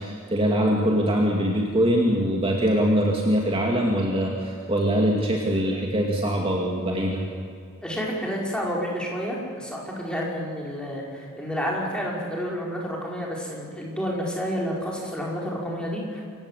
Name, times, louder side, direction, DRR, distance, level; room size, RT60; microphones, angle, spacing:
voice 1, 0.0-7.2, equal, 25° right, -1 dB, 2.4 m, -23 dB
voice 2, 7.8-16.2, equal, 5° left, -3 dB, 5.3 m, -30 dB
27.0 x 16.0 x 8.4 m, 2.3 s
head